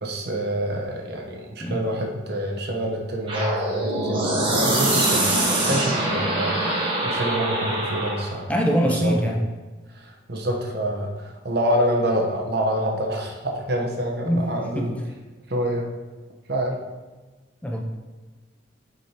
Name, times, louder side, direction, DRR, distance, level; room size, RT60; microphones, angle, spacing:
voice 1, 0.0-8.5 8.8-9.3 9.9-15.0 15.5-15.9 16.5-16.8, equal, 55° right, 1 dB, 1.0 m, -27 dB
sound 1, 3.3-8.3, right 1 dB, 25° right, 1.3 m, -24 dB
voice 2, 8.5-9.4 14.3-14.5 14.7-14.9 17.6-17.8, equal, 5° left, 1 dB, 0.5 m, -22 dB
7.3 x 5.2 x 2.9 m, 1.3 s
head